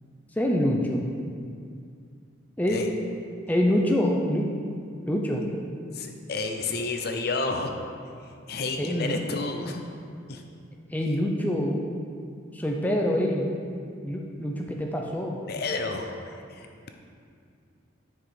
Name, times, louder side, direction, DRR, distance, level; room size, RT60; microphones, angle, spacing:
voice 1, 0.4-1.0 2.6-2.8 3.5-4.4 5.1-5.4 8.8-9.2 10.9-11.8 12.5-13.5 14.0-15.4, equal, 10° left, 0 dB, 0.6 m, -25 dB
voice 2, 5.9-7.8 8.2-9.9 10.3-10.4 15.5-16.9, left 3 dB, 50° left, 4 dB, 0.6 m, -31 dB
9.5 x 5.0 x 4.8 m, 2.3 s
head